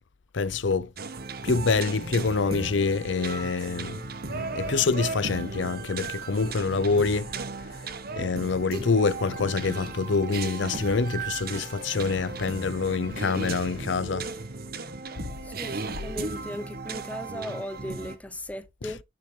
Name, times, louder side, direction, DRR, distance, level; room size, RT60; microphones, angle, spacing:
voice 1, 0.3-0.9 1.4-7.3 8.2-14.3 15.2-15.3 18.8-19.0, left 4 dB, 85° left, 0.6 m, -26 dB
sound 1, 1.0-18.2, right 4 dB, 55° right, 1.2 m, -36 dB
voice 2, 15.5-19.0, left 1 dB, 10° left, 0.8 m, -37 dB
9.9 x 6.9 x 3.3 m
head